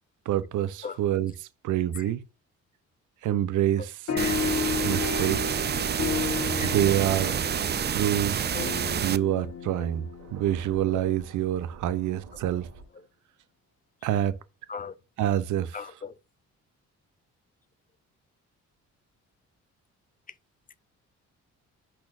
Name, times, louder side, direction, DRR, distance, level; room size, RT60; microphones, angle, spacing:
voice 1, 0.3-1.3 1.6-2.2 3.2-3.9 4.8-5.6 6.6-7.4 7.9-8.4 9.0-12.7 14.0-14.3 15.2-15.8, right 12 dB, 80° right, 0.7 m, -26 dB
voice 2, 3.8-4.4 5.7-5.9 6.6-6.7 8.5-8.8 10.9-11.0 12.9-13.1 14.7-14.9 15.7-16.2, left 5 dB, 30° left, 0.5 m, -39 dB
sound 1, 4.1-11.0, left 5 dB, 60° left, 1.3 m, -33 dB
sound 2, 4.2-9.2, right 8 dB, 35° right, 0.5 m, -28 dB
Thunder, 9.1-12.8, right 5 dB, 60° right, 1.9 m, -49 dB
10.5 x 4.3 x 2.6 m
cardioid pair, 90°, 30 cm